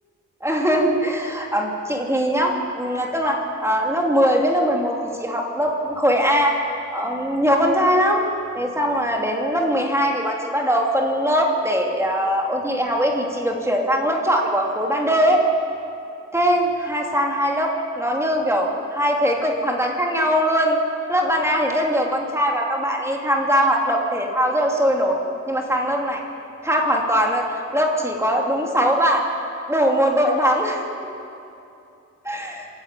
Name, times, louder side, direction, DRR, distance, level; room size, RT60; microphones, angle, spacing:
voice 1, 0.4-6.5 6.9-8.2 8.5-15.4 16.3-20.8 21.1-25.2 25.5-26.2 26.6-29.2 29.7-30.8 32.2-32.7, equal, 10° right, 0 dB, 2.7 m, -21 dB
26.0 x 11.5 x 8.9 m, 2.7 s
wide cardioid pair, 125°, 31 cm